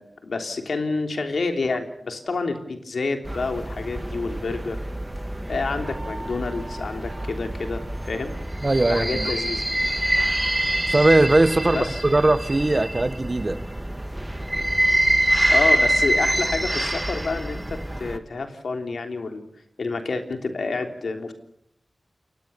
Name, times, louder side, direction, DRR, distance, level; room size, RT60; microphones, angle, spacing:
voice 1, 0.0-4.8 5.5-8.3 8.9-9.6 11.7-12.0 15.0-19.4 19.8-21.3, left 3 dB, 80° left, 6 dB, 3.3 m, -29 dB
sound 1, 3.2-18.2, right 1 dB, 15° right, 1.9 m, -25 dB
voice 2, 8.6-9.3 10.9-13.6, right 2 dB, 35° right, 13 dB, 1.4 m, -20 dB
29.5 x 23.0 x 7.0 m, 0.73 s
wide cardioid pair, 85°, 0 cm